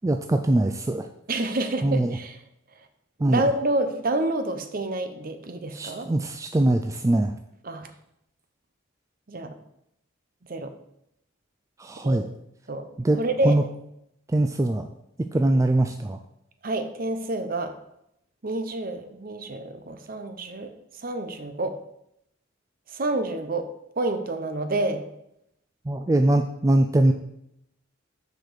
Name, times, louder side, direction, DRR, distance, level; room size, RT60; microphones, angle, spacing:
voice 1, 0.0-1.1 1.8-2.2 3.2-3.4 5.7-7.3 11.8-12.2 13.0-13.2 13.4-13.6 14.3-14.9 15.3-16.2 25.9-27.1, right 1 dB, 15° right, 6 dB, 0.3 m, -22 dB
voice 2, 1.3-2.4 3.2-6.1 7.6-7.9 9.3-9.6 10.5-10.7 12.0-12.3 12.7-12.9 13.2-13.7 16.6-17.7 18.4-20.7 21.0-21.8 22.9-23.7 24.0-25.0, right 2 dB, 45° right, 8 dB, 0.8 m, -28 dB
6.5 x 5.2 x 6.3 m, 0.80 s
head